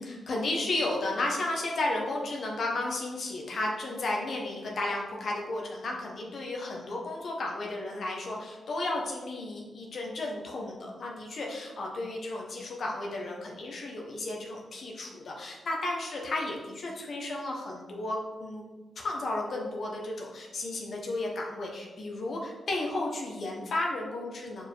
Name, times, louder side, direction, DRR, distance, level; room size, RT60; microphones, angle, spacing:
voice 1, 0.0-18.6 19.0-24.7, left 2 dB, 65° left, -1 dB, 1.2 m, -33 dB
4.7 x 4.7 x 4.7 m, 1.2 s
cardioid pair, 55°, 0 cm